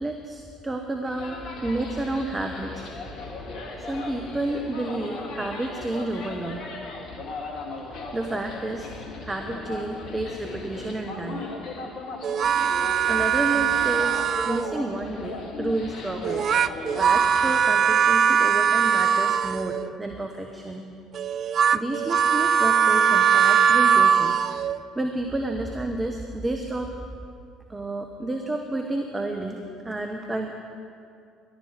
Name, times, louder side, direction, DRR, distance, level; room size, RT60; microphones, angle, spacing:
voice 1, 0.0-2.9 3.8-6.6 8.1-8.9 9.2-11.4 13.1-16.5 17.0-20.8 21.7-24.7 24.9-26.9 27.7-29.6 29.8-30.5, right 2 dB, 20° right, 4 dB, 1.1 m, -30 dB
sound 1, 1.0-17.6, left 3 dB, 60° left, 2.0 m, -37 dB
sound 2, 12.2-14.8 16.2-19.9 21.1-24.8, right 7 dB, 45° right, 0.3 m, -21 dB
14.0 x 12.0 x 5.1 m, 2.4 s
figure-of-eight pair, 55°, 0 cm